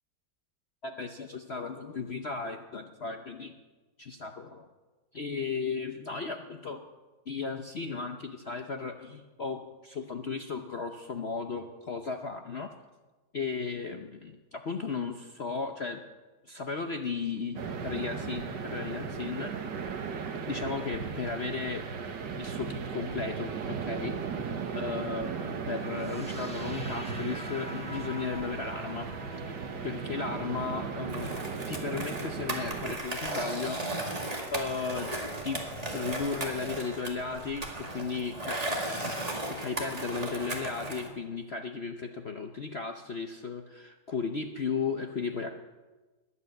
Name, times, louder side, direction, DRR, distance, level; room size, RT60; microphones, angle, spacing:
voice 1, 0.8-3.5 4.0-4.7 5.1-6.8 7.3-12.8 13.3-16.0 16.5-19.9 20.5-21.9 22.3-24.4 24.7-29.1 29.8-31.3 31.7-34.0 34.5-35.1 35.4-35.6 35.9-38.6 38.9-45.5, left 4 dB, 50° left, 5 dB, 0.7 m, -35 dB
sound 1, 17.6-33.0, right 5 dB, 65° right, 1.8 m, -36 dB
sound 2, 25.9-33.9, equal, 5° left, 1.0 m, -47 dB
Skateboard, 31.1-41.1, right 1 dB, 20° right, 2.1 m, -36 dB
21.0 x 8.5 x 7.8 m, 1.2 s
omnidirectional pair, 2.0 m